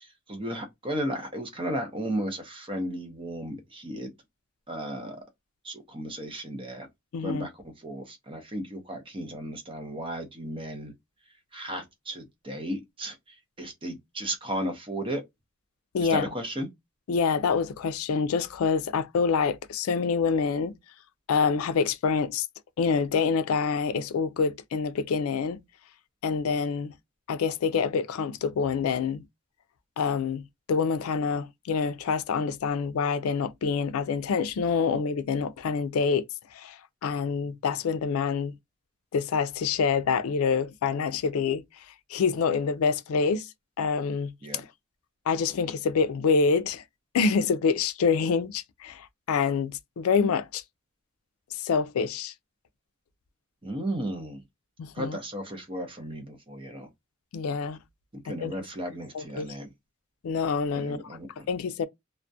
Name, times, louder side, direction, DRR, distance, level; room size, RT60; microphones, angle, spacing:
voice 1, 0.0-4.1 4.7-5.2 5.6-6.9 7.2-7.5 7.8-10.9 11.5-13.2 13.6-15.2 16.1-16.7 44.4-44.6 53.6-54.4 54.9-56.9 58.1-59.7 60.7-61.5, right 1 dB, 25° right, 0.7 m, -34 dB
voice 2, 7.1-7.5 15.9-16.2 17.1-20.8 21.3-22.5 22.8-25.6 26.2-26.9 27.3-29.2 30.0-36.2 36.5-38.5 39.1-41.6 42.1-43.5 43.8-44.6 45.3-46.8 47.1-50.6 51.5-52.3 54.8-55.2 57.3-57.8 58.3-58.5 59.1-59.5 60.2-61.0 61.5-61.9, left 5 dB, 85° left, 0.4 m, -26 dB
2.3 x 2.0 x 2.6 m
head